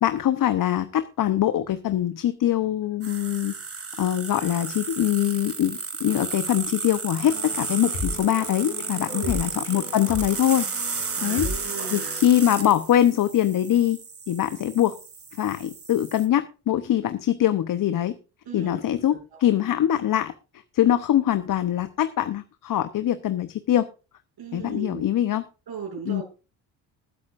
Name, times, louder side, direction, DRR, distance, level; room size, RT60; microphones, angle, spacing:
voice 1, 0.0-3.5 4.0-14.0 14.3-15.0 15.3-18.1 18.5-23.9 24.5-25.4 26.0-26.2, left 11 dB, 45° left, 11 dB, 0.9 m, -23 dB
sound 1, 3.0-16.2, right 5 dB, 30° right, 2.2 m, -34 dB
sound 2, 7.1-12.2, left 3 dB, 85° left, 6.2 m, -36 dB
voice 2, 9.0-9.4 11.1-12.2 18.5-18.8 19.1-19.5 24.4-25.0 25.7-26.2, right 6 dB, 55° right, 1 dB, 6.8 m, -37 dB
20.5 x 8.5 x 2.6 m, 0.32 s
hypercardioid pair, 65°, 44 cm